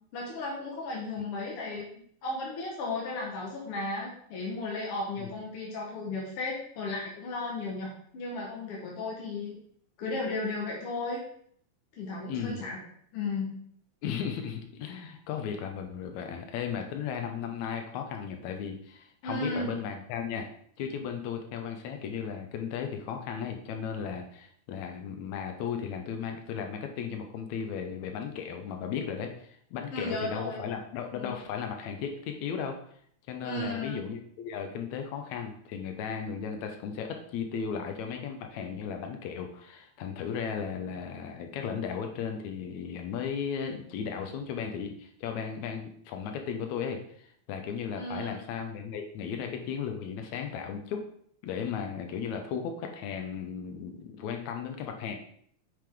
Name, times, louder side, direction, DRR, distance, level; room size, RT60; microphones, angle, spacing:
voice 1, 0.1-1.9 2.2-9.6 10.0-11.2 11.9-12.8 13.1-13.6 19.2-19.7 29.9-30.6 31.1-31.4 33.4-34.0 47.9-48.4, left 2 dB, 55° left, -3 dB, 2.0 m, -35 dB
voice 2, 12.3-12.6 14.0-20.5 20.8-32.8 33.3-51.1 51.4-55.2, left 7 dB, 75° left, 4 dB, 2.2 m, -35 dB
8.9 x 5.1 x 3.7 m, 0.63 s
omnidirectional pair, 3.4 m